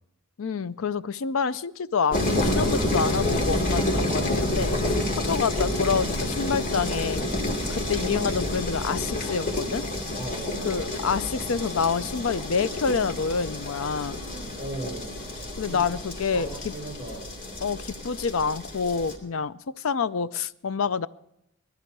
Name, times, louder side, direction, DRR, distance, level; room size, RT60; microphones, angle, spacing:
voice 1, 0.4-7.3 7.7-9.8 10.6-14.2 15.6-16.7 17.6-21.1, left 5 dB, 65° left, 15 dB, 0.5 m, -27 dB
sound 1, 2.1-19.2, left 1 dB, 40° left, 2.6 m, -29 dB
voice 2, 10.1-10.8 14.0-15.8 16.2-17.3, right 1 dB, 20° right, -3 dB, 4.9 m, -39 dB
19.0 x 14.0 x 4.7 m, 0.78 s
head